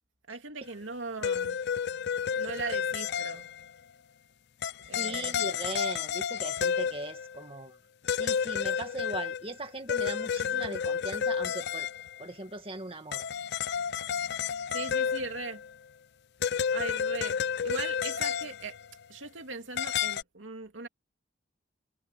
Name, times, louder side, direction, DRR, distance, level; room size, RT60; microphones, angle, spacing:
voice 1, 0.3-1.6 2.3-3.5 4.9-5.5 14.7-15.6 16.7-18.8 19.1-20.9, right 3 dB, 75° right, 2.7 m, -39 dB
sound 1, 1.2-3.7 4.6-7.4 8.1-12.2 13.1-15.7 16.4-18.9 19.8-20.2, left 7 dB, 60° left, 0.4 m, -31 dB
voice 2, 4.9-7.8 8.2-11.9 12.2-13.2, right 2 dB, 30° right, 2.0 m, -39 dB
head